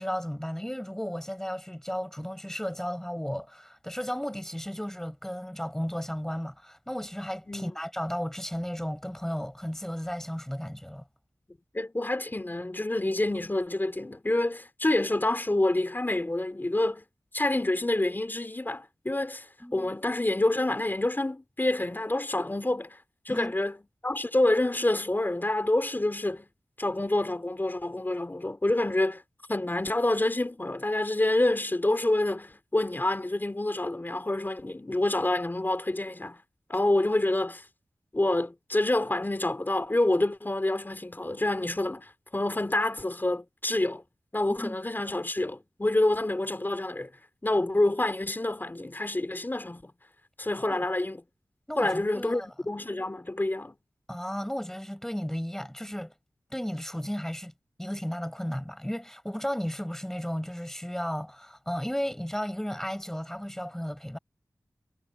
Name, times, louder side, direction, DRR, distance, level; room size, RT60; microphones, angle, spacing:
voice 1, 0.0-11.0 19.6-19.9 23.3-23.5 44.6-44.8 45.0-45.2 50.7-50.8 51.7-52.5 54.1-56.1 56.5-57.5 57.8-64.2, equal, 5° left, 6.2 m, -34 dB
voice 2, 11.7-17.1 17.3-23.0 23.3-23.8 24.0-26.5 26.8-29.2 29.5-36.4 36.7-37.6 38.1-44.0 44.3-47.1 47.4-49.9 50.4-51.2 51.8-53.8, left 2 dB, 30° left, 3.6 m, -27 dB
wide cardioid pair, 60°, 7 cm